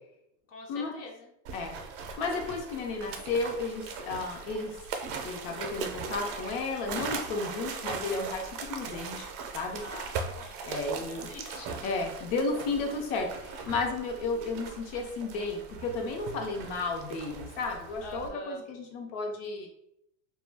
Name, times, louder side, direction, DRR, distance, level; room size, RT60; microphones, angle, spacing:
voice 1, 0.5-1.3 9.7-11.7 18.0-18.7, left 2 dB, 35° left, 2 dB, 0.4 m, -45 dB
sound 1, 1.4-18.3, right 5 dB, 55° right, 0.5 m, -40 dB
voice 2, 2.2-4.8 5.0-9.3 9.5-9.8 10.6-11.3 11.8-19.7, left 3 dB, 70° left, 2 dB, 0.8 m, -33 dB
2.3 x 2.2 x 3.3 m, 0.77 s
cardioid pair, 155°, 43 cm